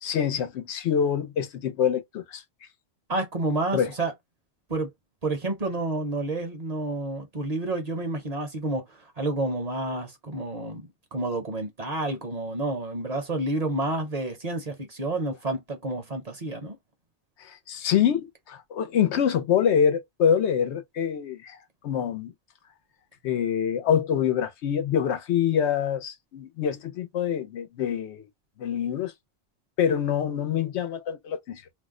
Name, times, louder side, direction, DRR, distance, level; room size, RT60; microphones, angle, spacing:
voice 1, 0.0-2.4 3.7-3.9 17.4-21.6 21.8-22.3 23.2-28.3 28.6-29.1 29.8-31.6, left 8 dB, 90° left, 0.9 m, -25 dB
voice 2, 3.1-4.1 4.7-4.9 5.2-16.8, right 2 dB, 40° right, 0.7 m, -29 dB
2.6 x 2.1 x 3.6 m
omnidirectional pair, 1.1 m